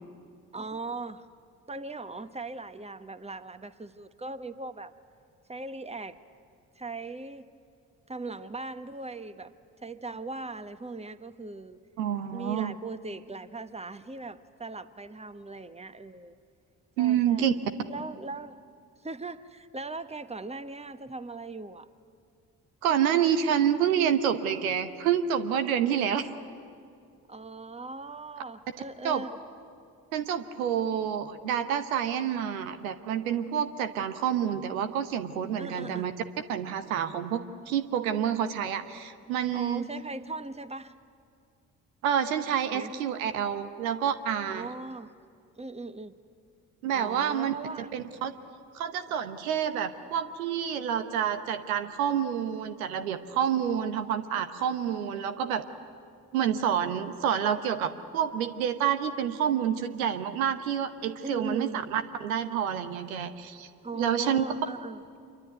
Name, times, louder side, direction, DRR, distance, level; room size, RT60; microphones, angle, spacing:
voice 1, 0.5-1.3 1.7-4.9 5.5-6.2 6.7-7.5 8.1-9.5 9.8-11.8 12.3-16.4 17.0-17.5 17.9-18.6 19.0-21.9 27.3-29.3 35.6-36.1 39.5-40.9 42.7-42.9 44.5-45.1 45.6-46.2 46.9-47.9 61.2-61.8 63.8-65.0, right 3 dB, 15° right, 1.3 m, -39 dB
voice 2, 12.0-12.7 17.0-17.5 22.8-26.3 29.0-29.2 30.1-36.1 36.5-39.9 42.0-44.7 46.8-47.5 47.9-48.3 48.7-55.6 56.3-63.7 63.9-64.4, right 9 dB, 85° right, 1.0 m, -28 dB
26.0 x 23.5 x 9.5 m
hypercardioid pair, 45°, 41 cm